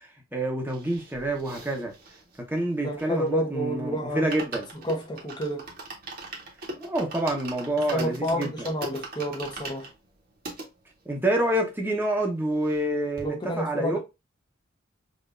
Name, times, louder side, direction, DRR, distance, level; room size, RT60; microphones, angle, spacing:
voice 1, 0.0-1.9 2.5-4.7 6.8-8.7 11.0-14.0, right 1 dB, 10° right, 1.0 m, -27 dB
sound 1, 0.7-3.5 3.8-3.9 4.1-10.7 11.3-11.4 11.5-11.6 11.9-12.9 13.2-13.3, right 2 dB, 45° right, 1.3 m, -40 dB
voice 2, 2.8-4.3 4.8-5.7 7.9-9.9 13.2-14.0, equal, 20° left, 1.1 m, -29 dB
5.3 x 2.7 x 2.5 m
head